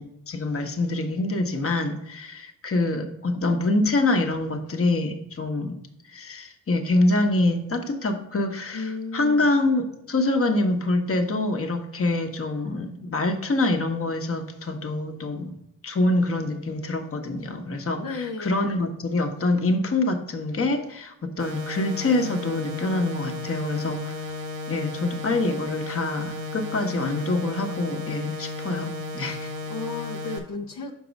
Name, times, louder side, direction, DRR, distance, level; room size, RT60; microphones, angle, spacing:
voice 1, 0.0-5.8 6.1-15.5 15.8-24.1 24.7-29.5, left 2 dB, 40° left, 5 dB, 1.1 m, -25 dB
voice 2, 8.7-9.5 18.0-18.7 29.3-30.9, left 4 dB, 65° left, -1 dB, 0.8 m, -34 dB
sound 1, 21.4-30.4, left 3 dB, 75° right, 1.3 m, -34 dB
5.9 x 4.6 x 5.3 m, 0.81 s
supercardioid pair, 50°, 35 cm